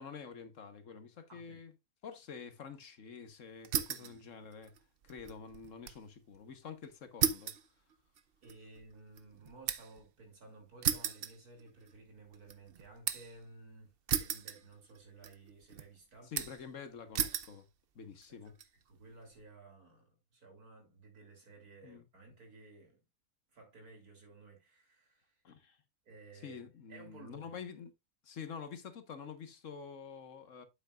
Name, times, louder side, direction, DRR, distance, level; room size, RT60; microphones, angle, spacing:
voice 1, 0.0-1.7 2.0-4.7 5.0-7.5 16.2-17.6 17.9-18.5 21.8-22.0 25.4-25.8 26.4-27.9 28.2-30.6, left 6 dB, 60° left, 1.4 m, -48 dB
voice 2, 1.3-1.6 4.0-4.2 8.4-16.3 18.3-18.5 18.9-23.0 23.5-25.4 26.1-27.6, right 3 dB, 85° right, 3.6 m, -56 dB
sound 1, 3.6-4.2 4.5-6.0 6.4-6.5 7.2-10.0 10.8-12.0 12.3-13.4 14.1-15.0 15.2-15.8 16.4-16.7 17.1-17.6 18.2-18.7, right 8 dB, 50° right, 0.7 m, -35 dB
9.0 x 7.8 x 2.4 m
omnidirectional pair, 1.5 m